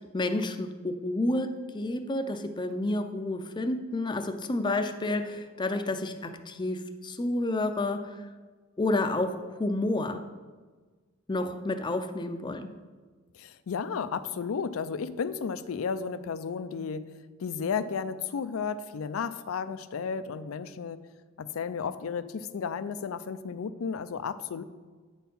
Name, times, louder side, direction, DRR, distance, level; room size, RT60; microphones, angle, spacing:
voice 1, 0.1-8.1 8.8-10.2 11.3-12.7, left 2 dB, 20° left, 8 dB, 0.5 m, -30 dB
voice 2, 13.3-17.1 17.4-21.0 21.4-24.6, left 6 dB, 80° left, 14 dB, 0.4 m, -33 dB
9.1 x 4.4 x 5.4 m, 1.4 s
head